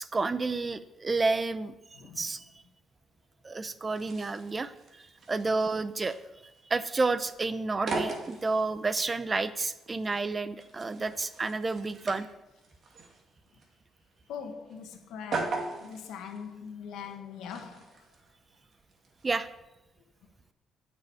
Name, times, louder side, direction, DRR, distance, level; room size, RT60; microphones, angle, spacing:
voice 1, 0.0-2.4 3.4-6.2 6.7-12.3 19.2-19.5, right 3 dB, 25° right, 0.7 m, -30 dB
voice 2, 1.9-2.3 14.3-17.9, left 7 dB, 85° left, 1.4 m, -42 dB
sound 1, 3.9-19.4, right 3 dB, 50° right, 2.3 m, -41 dB
9.6 x 6.3 x 8.7 m
cardioid pair, 100°, 0 cm